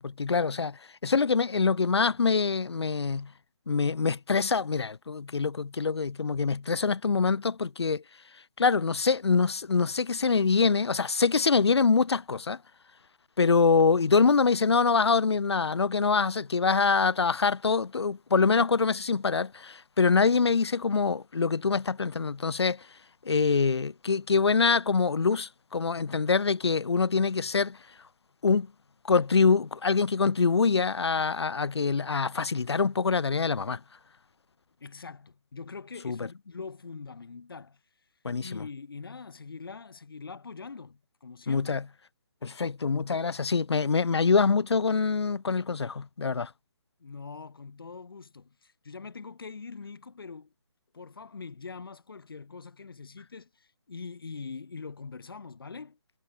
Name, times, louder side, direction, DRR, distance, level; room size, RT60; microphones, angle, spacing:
voice 1, 0.0-3.3 3.7-8.0 8.6-12.6 13.4-22.8 23.2-27.8 28.4-28.7 29.1-33.8 36.0-36.2 38.2-38.6 41.5-41.8 42.4-46.5, left 5 dB, 80° left, 0.8 m, -25 dB
voice 2, 34.8-37.8 38.4-41.8 47.0-50.5 50.9-56.0, left 4 dB, 60° left, 3.7 m, -43 dB
hypercardioid pair, 170°, 14 cm